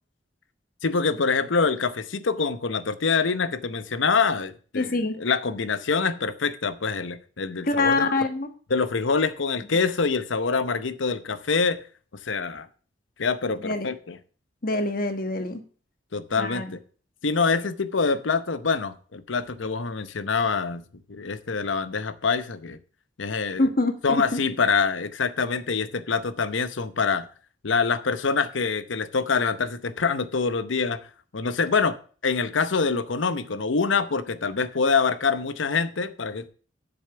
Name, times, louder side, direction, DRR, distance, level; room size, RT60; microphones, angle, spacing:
voice 1, 0.8-8.1 8.7-11.8 12.2-12.7 13.2-14.2 16.1-16.8 17.2-22.8 23.2-23.7 24.0-27.3 27.6-31.0 31.3-32.0 32.2-36.5, left 5 dB, 85° left, 0.8 m, -25 dB
voice 2, 4.7-5.2 7.6-8.5 13.6-13.9 14.6-15.6 16.4-16.7 23.6-24.3, left 2 dB, 50° left, 1.3 m, -25 dB
7.9 x 7.0 x 6.8 m
head